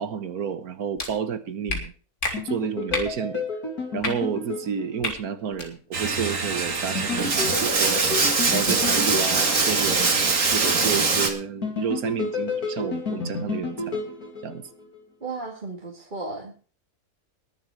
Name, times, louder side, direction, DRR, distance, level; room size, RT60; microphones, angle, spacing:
voice 1, 0.0-1.9 2.3-3.4 3.9-8.0 8.4-10.2 10.5-14.0 14.4-14.6, right 7 dB, 80° right, 11 dB, 1.6 m, -30 dB
sound 1, 1.0-1.1 1.7-1.8 2.2-2.3 2.9-3.1 4.0-4.1 5.0-5.1 5.5-5.7, left 3 dB, 55° left, 2.9 m, -28 dB
sound 2, 2.3-5.4 7.0-10.2 11.6-15.0, left 4 dB, 85° left, 3.4 m, -31 dB
Bathtub (filling or washing), 5.9-11.3, right 4 dB, 60° right, 2.3 m, -23 dB
voice 2, 15.2-16.5, right 3 dB, 35° right, 0 dB, 2.0 m, -34 dB
21.0 x 7.4 x 4.7 m, 0.39 s
omnidirectional pair, 1.5 m